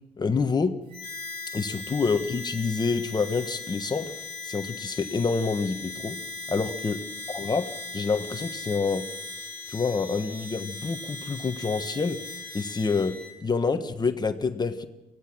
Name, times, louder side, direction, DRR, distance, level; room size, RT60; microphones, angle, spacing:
voice 1, 0.2-0.7 1.5-4.1 4.4-6.2 6.5-7.0 7.3-9.0 9.7-12.2 12.5-13.1 13.4-14.9, left 4 dB, 25° left, 8 dB, 1.3 m, -27 dB
Harmonica, 0.9-13.3, left 3 dB, 30° right, 6.7 m, -39 dB
24.5 x 17.0 x 6.3 m, 1.0 s
cardioid pair, 110°, 17 cm